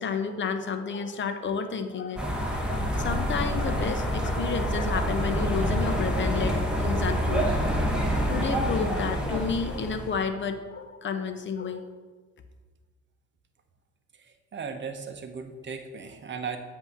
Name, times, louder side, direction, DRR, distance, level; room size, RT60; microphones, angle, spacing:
voice 1, 0.0-7.7 8.3-11.8, left 5 dB, 40° left, 8 dB, 0.7 m, -31 dB
sound 1, 2.2-10.2, equal, 5° right, 1.1 m, -27 dB
voice 2, 14.5-16.6, right 5 dB, 40° right, 6 dB, 0.8 m, -36 dB
8.0 x 2.8 x 6.0 m, 1.4 s
cardioid pair, 90°, 30 cm